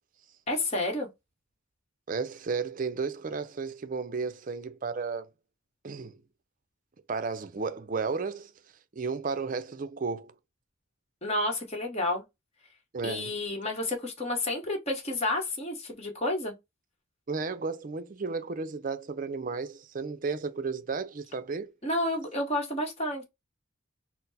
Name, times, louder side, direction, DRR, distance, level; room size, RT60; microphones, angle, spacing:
voice 1, 0.5-1.1 11.2-12.2 13.0-16.5 21.8-23.2, left 1 dB, 30° left, 1.1 m, -30 dB
voice 2, 2.1-5.3 5.8-6.2 7.1-8.5 8.9-10.3 12.9-13.3 17.3-21.7, right 4 dB, 40° right, 0.5 m, -33 dB
4.3 x 2.0 x 4.0 m
head